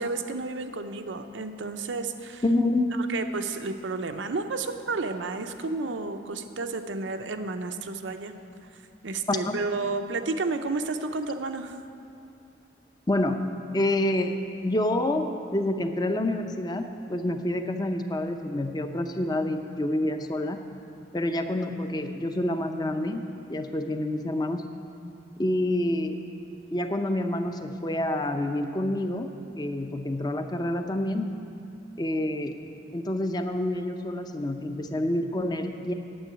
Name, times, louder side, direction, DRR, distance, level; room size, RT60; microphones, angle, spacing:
voice 1, 0.0-2.4 3.1-8.3 9.0-11.8, right 3 dB, 90° right, 7 dB, 0.7 m, -31 dB
voice 2, 2.4-2.9 9.3-9.6 13.1-13.5 13.7-20.6 21.1-23.2 23.5-24.6 25.4-26.2 26.7-31.3 32.0-32.5 32.9-35.9, left 1 dB, 20° left, 7 dB, 0.6 m, -28 dB
8.8 x 7.6 x 9.0 m, 2.6 s
head